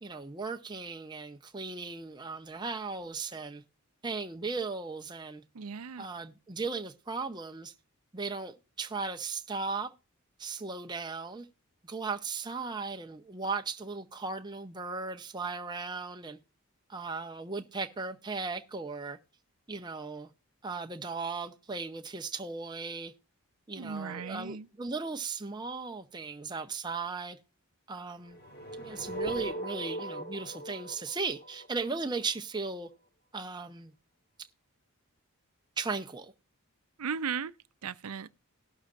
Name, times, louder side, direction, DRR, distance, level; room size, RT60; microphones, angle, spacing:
voice 1, 0.0-3.6 4.0-5.4 6.0-7.7 8.1-9.9 10.4-11.5 11.8-16.4 16.9-19.2 19.7-20.3 20.6-23.1 23.7-27.4 27.9-28.4 28.8-32.9 33.3-33.9 35.8-36.3, right 4 dB, 20° right, 0.7 m, -37 dB
voice 2, 5.5-6.1 23.8-24.7 37.0-37.5 37.8-38.3, right 6 dB, 80° right, 0.6 m, -36 dB
sound 1, 28.3-32.4, right 1 dB, 45° left, 1.5 m, -39 dB
18.5 x 6.4 x 2.5 m
head